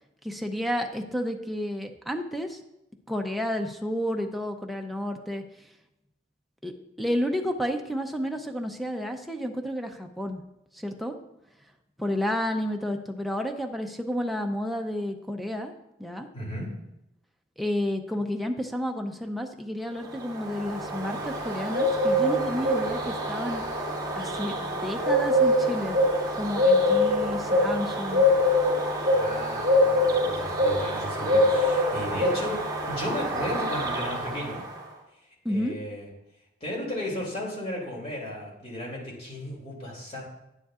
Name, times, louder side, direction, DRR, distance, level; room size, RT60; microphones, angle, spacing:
voice 1, 0.2-2.6 3.1-5.4 6.6-6.7 7.0-10.4 10.7-11.1 12.0-15.7 16.0-16.3 17.6-23.6 24.2-26.0 26.3-28.2 35.4-35.8, equal, ahead, 3 dB, 0.6 m, -31 dB
voice 2, 16.3-16.7 29.1-32.6 32.8-34.6 35.5-36.1 36.6-40.2, left 1 dB, 35° left, -3 dB, 2.6 m, -35 dB
Bird, 20.1-34.8, left 1 dB, 20° right, 2.4 m, -25 dB
9.8 x 9.5 x 2.4 m, 0.88 s
head